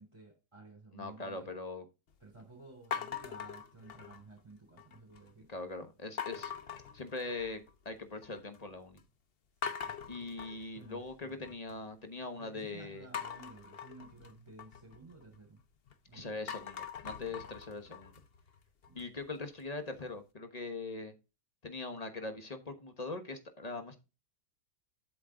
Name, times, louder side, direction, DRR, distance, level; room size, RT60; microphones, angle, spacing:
voice 1, 0.0-1.5 2.2-5.5 9.6-9.9 10.7-11.5 12.4-15.6 16.0-16.3 17.2-17.4 18.9-19.0, right 3 dB, 15° right, -2 dB, 3.4 m, -54 dB
voice 2, 0.9-1.9 5.5-6.5 6.9-9.0 10.1-13.1 16.1-18.2 18.9-21.1 21.6-24.0, left 3 dB, 25° left, 7 dB, 0.9 m, -41 dB
sound 1, 2.9-4.4 4.8-5.3 6.2-7.7 8.0-8.6 9.0-9.1 9.6-11.7 13.1-15.9 16.3-19.2, left 7 dB, 50° left, 0.7 m, -43 dB
8.0 x 7.4 x 3.8 m, 0.28 s
omnidirectional pair, 2.1 m